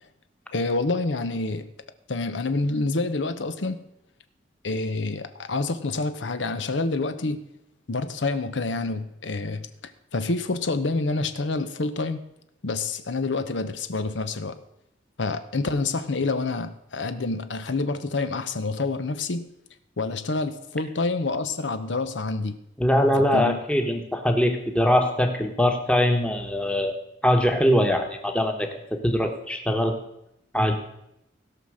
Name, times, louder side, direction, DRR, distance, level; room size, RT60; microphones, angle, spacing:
voice 1, 0.5-1.7 2.1-3.8 4.6-7.4 7.9-9.7 10.1-12.2 12.6-14.6 15.2-19.5 20.0-22.6 23.3-23.6, left 3 dB, 85° left, 10 dB, 0.8 m, -27 dB
voice 2, 22.8-26.9 27.2-28.7 29.0-29.9 30.5-30.8, equal, 5° left, 4 dB, 1.1 m, -22 dB
16.5 x 5.9 x 6.4 m, 0.81 s
head